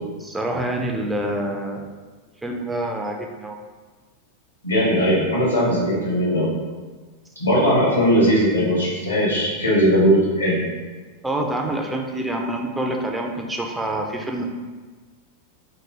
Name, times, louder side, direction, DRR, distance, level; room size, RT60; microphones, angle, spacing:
voice 1, 0.2-1.9 2.4-3.6 11.2-14.4, right 1 dB, 10° right, 1 dB, 0.3 m, -26 dB
voice 2, 4.6-6.5 7.4-10.6, equal, 85° left, -5 dB, 1.1 m, -19 dB
3.0 x 2.4 x 3.4 m, 1.4 s
figure-of-eight pair, 90°, 0 cm